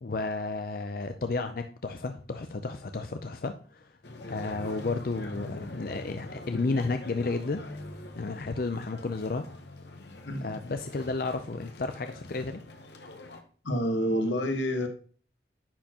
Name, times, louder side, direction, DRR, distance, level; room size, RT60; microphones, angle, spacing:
voice 1, 0.0-4.0 4.3-7.6 8.2-9.4 10.4-12.6, left 3 dB, 50° left, 0.5 m, -32 dB
sound 1, 4.0-13.4, left 2 dB, 70° left, 1.1 m, -44 dB
voice 2, 10.2-10.6 13.6-14.9, equal, 90° left, 1.3 m, -28 dB
10.0 x 4.4 x 2.9 m
head